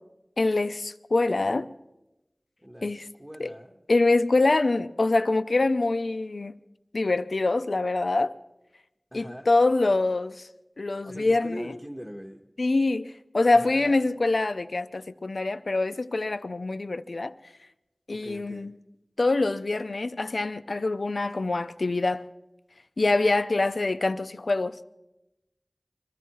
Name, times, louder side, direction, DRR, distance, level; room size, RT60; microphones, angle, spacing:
voice 1, 0.4-1.7 2.8-3.1 3.4-3.5 3.9-6.5 6.9-8.3 9.1-10.5 10.8-11.8 12.6-17.3 18.1-18.7 19.2-22.2 23.0-24.8, left 2 dB, 80° left, 0.5 m, -25 dB
voice 2, 2.6-3.8 9.1-9.5 11.0-12.4 13.5-14.0 18.1-18.7, equal, 10° right, 1.0 m, -41 dB
23.0 x 13.5 x 4.6 m
wide cardioid pair, 55°, 0 cm